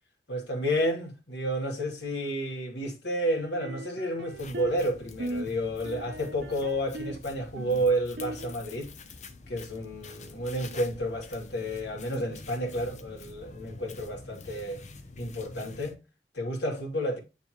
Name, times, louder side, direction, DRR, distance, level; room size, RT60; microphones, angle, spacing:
voice 1, 0.3-8.9 9.5-14.8 15.2-16.0 16.3-17.2, equal, 85° left, 2.5 m, -31 dB
sound 1, 3.4-4.9 5.2-5.5 5.8-7.2 7.6-8.5, right 1 dB, 80° right, 0.8 m, -38 dB
sound 2, 4.3-16.0, left 3 dB, 40° left, 0.8 m, -47 dB
9.6 x 3.4 x 3.0 m
head